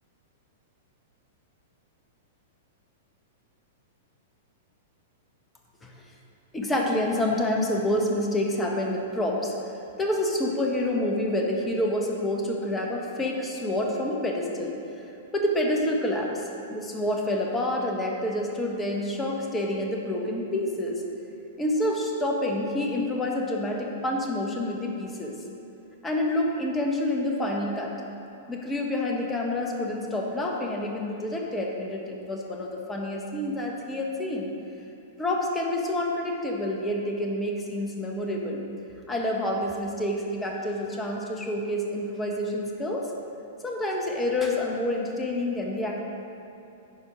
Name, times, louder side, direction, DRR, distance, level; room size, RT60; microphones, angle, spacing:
voice 1, 6.5-9.5 10.0-14.8 15.0-21.0 21.6-25.4 26.0-27.9 28.5-34.5 35.2-38.6 39.1-43.1 43.6-46.0, left 1 dB, 15° left, 0 dB, 1.1 m, -28 dB
10.0 x 4.6 x 5.0 m, 2.8 s
figure-of-eight pair, 105°, 0 cm